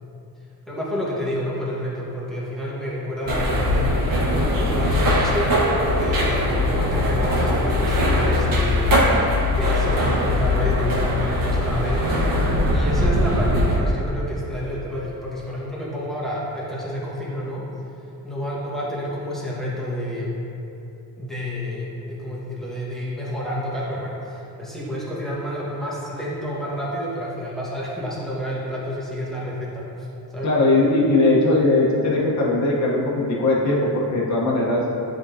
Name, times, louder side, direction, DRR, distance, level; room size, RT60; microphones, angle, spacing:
voice 1, 0.7-4.0 4.5-5.6 5.8-8.9 9.5-12.1 12.7-17.7 18.2-20.3 21.2-30.1 30.3-30.5, left 1 dB, ahead, -8 dB, 1.4 m, -29 dB
sound 1, 3.3-13.8, left 1 dB, 60° right, 1.4 m, -20 dB
voice 2, 30.4-34.8, left 2 dB, 50° left, -4 dB, 1.1 m, -19 dB
9.7 x 3.7 x 2.7 m, 2.9 s
cardioid pair, 120°, 37 cm